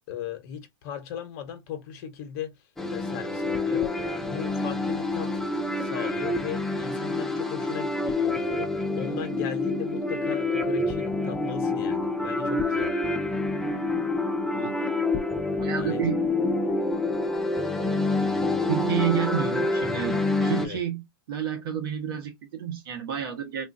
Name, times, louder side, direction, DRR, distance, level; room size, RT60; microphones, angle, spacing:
voice 1, 0.1-2.6 2.9-5.5 5.8-12.9 15.8-16.1 20.6-20.8, left 8 dB, 40° left, 1.0 m, -37 dB
sound 1, 2.8-20.7, left 2 dB, 5° left, 0.4 m, -27 dB
voice 2, 15.6-16.2 18.7-23.7, right 9 dB, 60° right, 1.2 m, -30 dB
3.6 x 2.6 x 2.5 m
hypercardioid pair, 150°, 13 cm